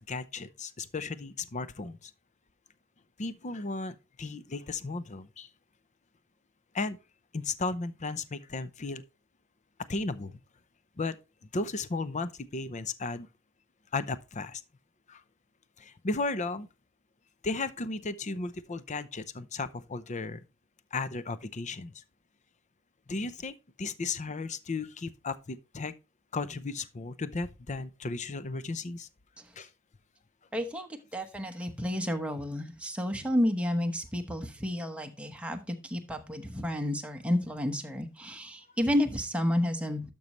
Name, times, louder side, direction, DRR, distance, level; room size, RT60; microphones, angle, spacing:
voice 1, 0.0-2.1 3.2-5.5 6.7-7.0 7.3-9.0 9.9-10.4 11.0-11.2 11.5-13.3 13.9-14.6 15.1-15.2 15.8-16.7 17.4-20.4 20.9-21.9 23.1-25.9 26.3-29.1 29.6-29.7, left 3 dB, 35° left, 0.6 m, -35 dB
voice 2, 30.5-40.0, left 1 dB, 5° right, 1.0 m, -31 dB
12.0 x 5.4 x 3.0 m
head